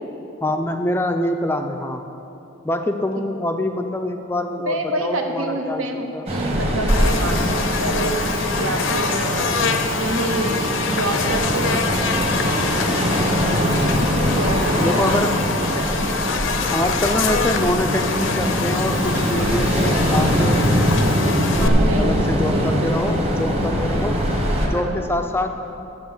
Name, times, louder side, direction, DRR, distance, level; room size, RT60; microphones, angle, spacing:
voice 1, 0.4-2.0 2.6-6.3 14.8-15.5 16.7-20.6 21.4-24.2 24.6-25.5, left 1 dB, 10° left, 5 dB, 0.4 m, -25 dB
voice 2, 4.6-8.2 8.5-10.6 10.8-12.4 14.0-15.2 15.6-15.9 21.6-22.2 22.5-23.1 24.7-25.0, right 2 dB, 75° right, 3 dB, 1.1 m, -27 dB
Ocean, 6.3-24.7, equal, 30° right, 1.2 m, -22 dB
Buzz, 6.9-21.7, left 5 dB, 60° left, 0.6 m, -26 dB
9.3 x 7.2 x 7.2 m, 2.9 s
head